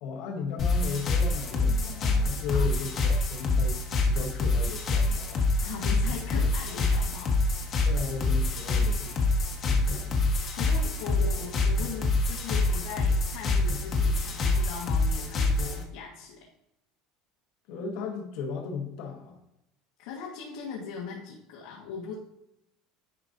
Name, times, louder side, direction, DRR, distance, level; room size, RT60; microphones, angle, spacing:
voice 1, 0.0-5.4 7.8-9.3 9.7-10.2 17.7-19.4, left 5 dB, 65° left, 2 dB, 1.1 m, -36 dB
sound 1, 0.6-15.8, left 2 dB, 30° left, 1.1 m, -26 dB
voice 2, 2.5-2.9 5.6-7.4 10.5-16.5 20.0-22.2, left 5 dB, 85° left, -3 dB, 1.3 m, -39 dB
10.0 x 5.0 x 2.6 m, 0.83 s
cardioid pair, 160°, 0 cm